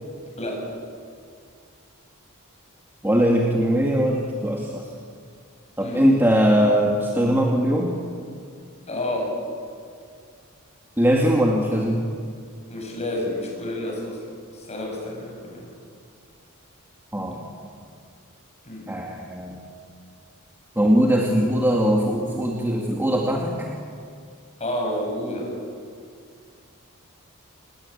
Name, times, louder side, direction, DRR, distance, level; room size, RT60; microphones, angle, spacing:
voice 1, 3.0-4.9 5.8-8.0 11.0-12.1 17.1-17.5 18.9-19.6 20.8-23.7, equal, 10° right, -1 dB, 2.2 m, -21 dB
voice 2, 5.8-6.1 8.9-9.3 12.7-14.2 14.5-15.7 18.6-18.9 24.6-25.5, left 1 dB, 30° left, 0 dB, 7.6 m, -29 dB
28.5 x 20.0 x 8.7 m, 2.2 s
head